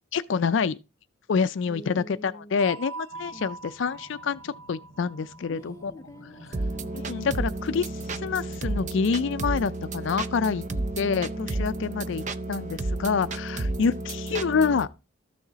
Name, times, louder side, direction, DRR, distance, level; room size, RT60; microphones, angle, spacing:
voice 1, 0.1-0.8 1.3-5.9 6.9-10.6 11.0-14.9, left 5 dB, 60° left, 0.4 m, -27 dB
voice 2, 1.7-2.6 3.3-3.4 5.5-7.0 10.7-10.9 13.7-14.1, left 1 dB, 15° left, 0.7 m, -46 dB
sound 1, 2.6-7.2, right 3 dB, 65° right, 1.8 m, -43 dB
sound 2, 3.1-8.8, equal, 85° right, 2.1 m, -50 dB
sound 3, 6.5-14.9, right 2 dB, 35° right, 0.5 m, -32 dB
13.0 x 6.3 x 4.0 m
head